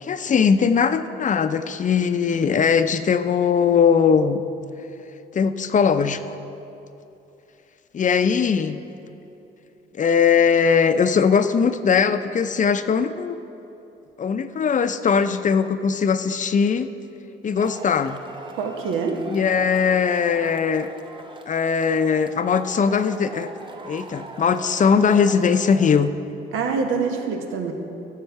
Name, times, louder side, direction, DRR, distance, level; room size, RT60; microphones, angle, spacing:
voice 1, 0.0-4.4 5.3-6.4 7.9-8.8 10.0-13.4 14.2-16.9 17.4-18.2 19.3-20.9 21.5-23.5 23.9-26.1, left 6 dB, 40° left, 10 dB, 0.5 m, -20 dB
Male speech man speaking / Shout / Clapping, 17.6-26.0, right 3 dB, 25° right, 0.8 m, -40 dB
voice 2, 18.5-19.2 26.5-27.7, right 5 dB, 90° right, 4 dB, 1.1 m, -25 dB
15.0 x 6.7 x 4.7 m, 2.9 s
cardioid pair, 90°, 20 cm